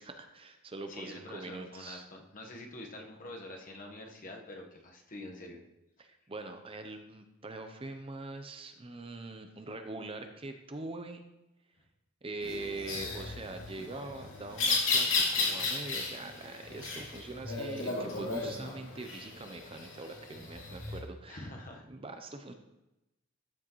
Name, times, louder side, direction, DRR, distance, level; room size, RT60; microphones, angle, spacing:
voice 1, 0.0-2.0 6.0-11.2 12.2-21.5 21.9-22.5, right 2 dB, 30° right, 6 dB, 0.6 m, -43 dB
voice 2, 0.9-5.6 21.3-21.9, left 1 dB, 45° left, 1 dB, 1.2 m, -46 dB
sound 1, 12.4-21.0, left 3 dB, 80° left, 2.5 m, -34 dB
13.0 x 6.2 x 3.0 m, 0.94 s
head